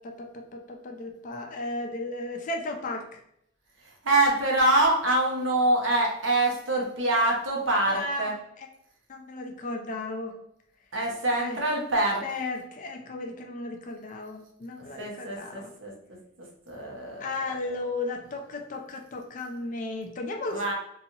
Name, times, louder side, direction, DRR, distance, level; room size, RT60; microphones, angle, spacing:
voice 1, 0.0-3.2 7.8-8.7 9.1-10.4 11.4-11.6 12.2-15.7 17.2-20.7, left 2 dB, 45° left, 3 dB, 0.4 m, -35 dB
voice 2, 4.0-8.3 10.9-12.2 15.0-15.9 16.7-17.3 20.5-20.7, right 2 dB, 90° right, 0 dB, 0.8 m, -25 dB
2.8 x 2.3 x 2.7 m, 0.75 s
head